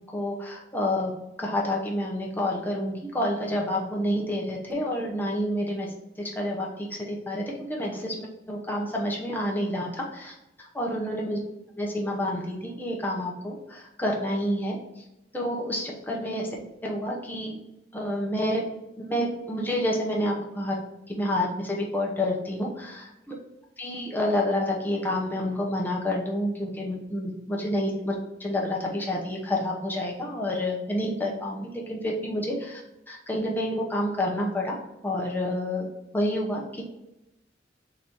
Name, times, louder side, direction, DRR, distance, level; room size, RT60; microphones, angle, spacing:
voice 1, 0.1-1.1 1.4-10.3 10.7-11.4 11.8-14.8 15.3-16.5 16.8-17.6 17.9-18.6 18.9-20.8 21.1-23.1 23.8-32.8 33.1-34.8 35.0-35.9 36.1-36.8, left 1 dB, 10° left, -2 dB, 0.8 m, -29 dB
3.9 x 2.7 x 4.5 m, 0.91 s
head